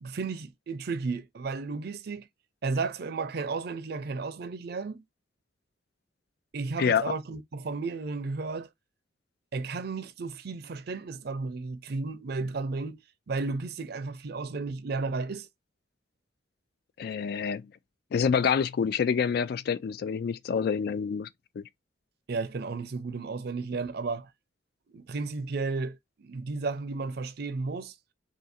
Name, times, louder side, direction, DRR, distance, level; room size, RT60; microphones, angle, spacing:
voice 1, 0.0-2.3 2.6-5.0 6.5-8.7 9.5-13.0 13.3-15.5 22.3-24.3 24.9-27.9, right 4 dB, 60° right, 0.5 m, -33 dB
voice 2, 6.8-7.1 17.0-17.7 18.1-21.3 21.6-21.7, left 6 dB, 55° left, 0.3 m, -27 dB
2.7 x 2.6 x 4.1 m
head